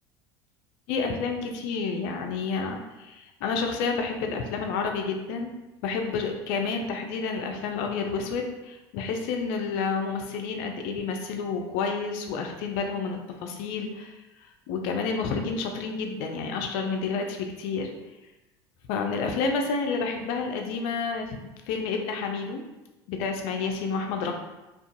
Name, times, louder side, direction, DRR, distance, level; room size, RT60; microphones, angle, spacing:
voice 1, 0.9-5.5 5.8-14.1 14.7-17.9 18.9-21.4 21.7-22.6 23.1-24.3, left 4 dB, 65° left, 4 dB, 0.4 m, -29 dB
2.4 x 2.2 x 2.5 m, 1.0 s
hypercardioid pair, 75°, 13 cm